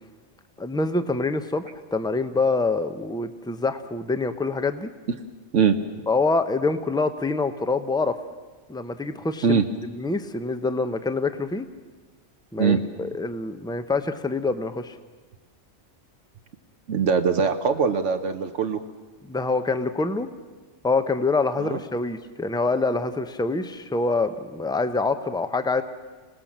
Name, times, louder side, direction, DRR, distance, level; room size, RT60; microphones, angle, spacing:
voice 1, 0.6-1.6 1.9-4.9 6.1-8.1 8.7-11.7 12.5-14.9 19.2-20.3 20.8-25.8, left 3 dB, 5° left, 9 dB, 0.8 m, -25 dB
voice 2, 16.9-18.8 21.6-21.8, right 6 dB, 80° right, 6 dB, 1.3 m, -21 dB
26.5 x 18.5 x 7.4 m, 1.3 s
omnidirectional pair, 1.2 m